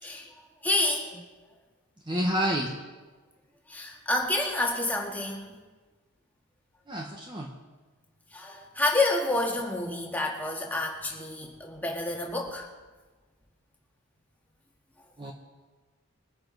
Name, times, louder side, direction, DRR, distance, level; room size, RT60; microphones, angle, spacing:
voice 1, 0.6-1.1 3.7-5.6 8.3-12.7, left 2 dB, 5° left, -1 dB, 1.7 m, -29 dB
voice 2, 2.0-2.8 6.9-7.6 15.2-15.3, equal, 20° right, 0 dB, 1.0 m, -29 dB
22.5 x 9.6 x 4.0 m, 1.3 s
head